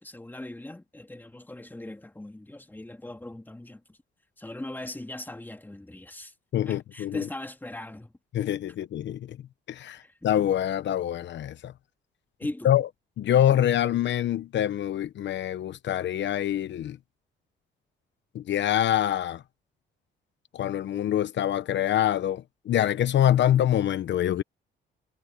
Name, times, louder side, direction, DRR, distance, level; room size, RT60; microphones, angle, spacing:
voice 1, 0.0-4.0 4.4-6.3 6.6-8.1 10.0-10.1 12.4-12.7, left 1 dB, 10° left, 2.3 m, -39 dB
voice 2, 6.5-7.2 8.3-9.4 9.7-11.7 12.6-12.9 13.2-17.0 18.3-19.4 20.5-24.4, left 11 dB, 65° left, 0.9 m, -25 dB
cardioid pair, 90°, 20 cm